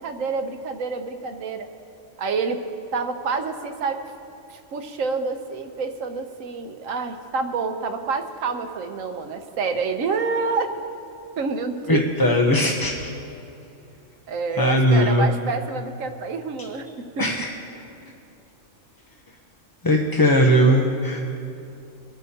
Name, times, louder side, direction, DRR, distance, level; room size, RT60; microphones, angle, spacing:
voice 1, 0.0-1.7 2.2-2.6 2.9-4.0 4.5-10.8 11.4-12.0 14.3-16.9, right 4 dB, 85° right, 6 dB, 1.2 m, -28 dB
voice 2, 11.9-12.9 14.6-15.3 17.2-17.4 19.8-21.2, equal, 20° left, 0 dB, 0.6 m, -18 dB
24.5 x 9.7 x 2.8 m, 2.6 s
omnidirectional pair, 1.3 m